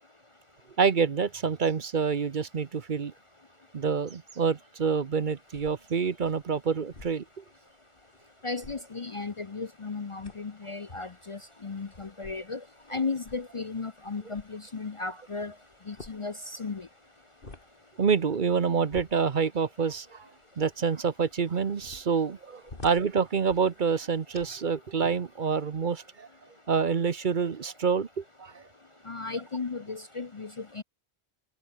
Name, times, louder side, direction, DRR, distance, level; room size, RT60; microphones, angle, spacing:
voice 1, 0.8-3.1 3.7-7.4 18.0-20.3 20.6-26.3 26.7-28.6, right 6 dB, 50° right, 1.0 m, -27 dB
sound 1, 5.2-24.7, left 2 dB, 55° left, 3.1 m, -53 dB
voice 2, 8.4-12.6 12.9-15.5 15.9-16.9 29.1-30.8, left 4 dB, 35° left, 0.7 m, -35 dB
omnidirectional pair, 1.1 m